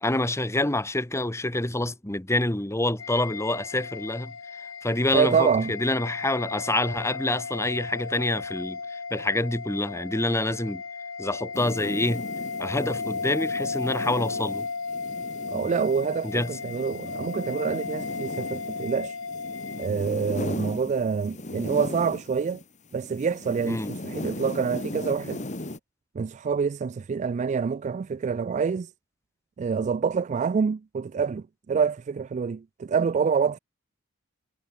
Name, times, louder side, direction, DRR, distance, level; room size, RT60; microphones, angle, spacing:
voice 1, 0.0-10.8 11.2-12.2 12.6-14.7 16.2-16.6 23.6-23.9, left 2 dB, 15° left, 1.4 m, -27 dB
sound 1, 3.0-19.9, left 4 dB, 80° left, 2.2 m, -35 dB
voice 2, 5.1-5.7 15.5-19.2 19.8-22.6 22.9-25.4 26.2-28.9 29.6-33.6, right 6 dB, 35° right, 0.3 m, -26 dB
sound 2, 11.5-22.6 22.9-25.8, left 1 dB, 35° left, 2.1 m, -37 dB
head